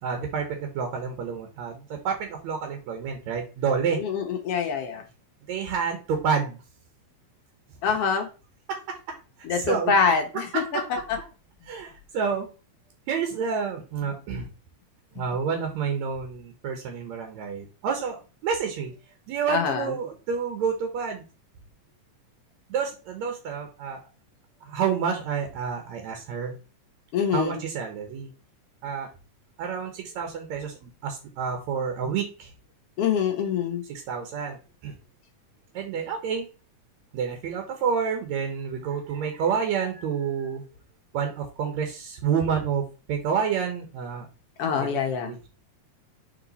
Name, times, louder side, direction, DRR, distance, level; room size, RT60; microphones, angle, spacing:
voice 1, 0.0-4.0 5.5-6.6 8.7-9.2 9.5-9.9 10.3-10.9 11.7-12.5 13.1-14.5 15.1-18.9 19.3-21.3 22.7-24.0 24.6-26.6 27.3-28.3 28.8-29.1 29.6-32.5 33.8-35.0 35.7-36.5 37.1-40.6 41.1-44.3 44.8-44.9 45.3-45.5, right 6 dB, 70° right, 4 dB, 2.2 m, -29 dB
voice 2, 4.0-5.0 7.8-8.3 9.4-10.6 10.9-11.0 19.5-19.9 27.1-27.6 33.0-33.8 44.6-45.3, left 6 dB, 65° left, 4 dB, 1.6 m, -25 dB
5.9 x 4.5 x 4.0 m, 0.34 s
omnidirectional pair, 3.6 m